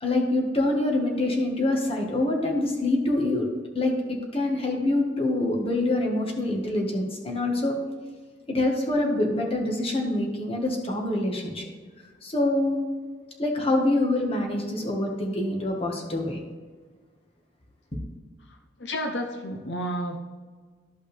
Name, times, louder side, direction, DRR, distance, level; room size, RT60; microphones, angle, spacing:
voice 1, 0.0-3.5 3.7-7.8 8.5-11.6 12.2-12.8 13.4-16.4, left 2 dB, 35° left, 1 dB, 1.5 m, -25 dB
voice 2, 18.8-20.2, equal, 75° left, 4 dB, 0.8 m, -31 dB
13.0 x 5.5 x 3.4 m, 1.5 s
head